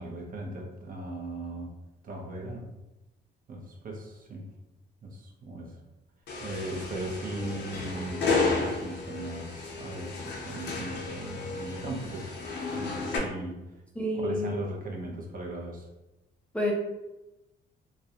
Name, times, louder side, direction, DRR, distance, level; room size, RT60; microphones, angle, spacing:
voice 1, 0.0-1.8 2.0-2.7 3.5-4.5 5.0-5.8 6.4-12.3 12.7-13.7 14.1-15.9, right 1 dB, 45° right, 0 dB, 0.6 m, -38 dB
sound 1, 6.3-13.2, left 4 dB, 60° left, 0.6 m, -32 dB
voice 2, 14.0-14.6 16.5-16.7, left 1 dB, 5° left, -3 dB, 0.4 m, -29 dB
2.4 x 2.0 x 2.7 m, 0.98 s
cardioid pair, 90°, 20 cm